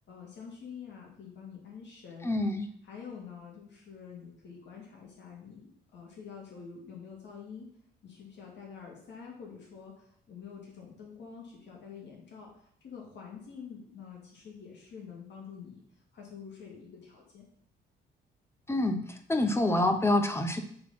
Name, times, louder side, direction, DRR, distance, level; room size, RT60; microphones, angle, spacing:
voice 1, 0.1-2.4 2.8-7.7 8.0-15.8 16.1-17.5, left 6 dB, 65° left, -2 dB, 2.5 m, -47 dB
voice 2, 2.2-2.7 18.7-20.6, left 1 dB, 10° left, 6 dB, 1.0 m, -27 dB
6.7 x 4.2 x 5.9 m, 0.64 s
cardioid pair, 90°, 20 cm